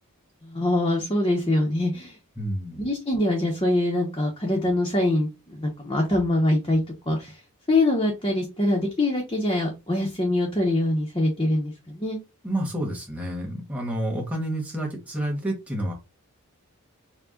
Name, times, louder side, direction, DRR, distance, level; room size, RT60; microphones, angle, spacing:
voice 1, 0.4-2.1 2.7-7.3 7.7-12.2, left 1 dB, 20° left, -1 dB, 0.9 m, -24 dB
voice 2, 2.4-2.8 12.4-15.9, right 1 dB, 5° right, -1 dB, 1.4 m, -29 dB
4.7 x 2.4 x 3.8 m, 0.26 s
head